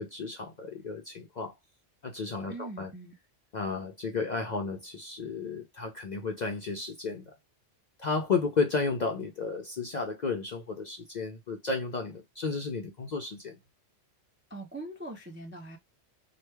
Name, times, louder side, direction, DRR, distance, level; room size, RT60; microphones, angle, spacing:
voice 1, 0.0-1.5 2.0-2.9 3.5-7.2 8.0-13.6, left 4 dB, 55° left, 0.5 m, -33 dB
voice 2, 2.5-3.1 14.5-15.8, right 2 dB, 20° right, 0.4 m, -42 dB
3.1 x 2.2 x 3.2 m
omnidirectional pair, 1.2 m